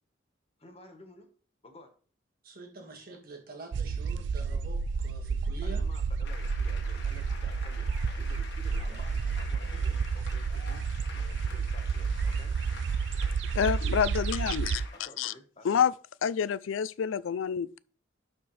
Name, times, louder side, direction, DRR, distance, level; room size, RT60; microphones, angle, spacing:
voice 1, 0.6-1.3 1.6-1.9 5.6-7.9 8.2-10.8 11.1-12.5 13.6-13.8 14.9-15.9, left 2 dB, 30° left, 1.3 m, -52 dB
voice 2, 2.4-5.8 8.9-9.0, right 2 dB, 50° right, 1.9 m, -46 dB
sound 1, 3.7-14.9, right 5 dB, 65° right, 0.4 m, -31 dB
sound 2, 6.2-15.0, left 4 dB, 60° left, 1.5 m, -47 dB
voice 3, 13.6-14.8 15.2-15.3 15.6-15.9 16.2-17.8, left 7 dB, 85° left, 0.4 m, -28 dB
12.0 x 4.4 x 3.3 m
head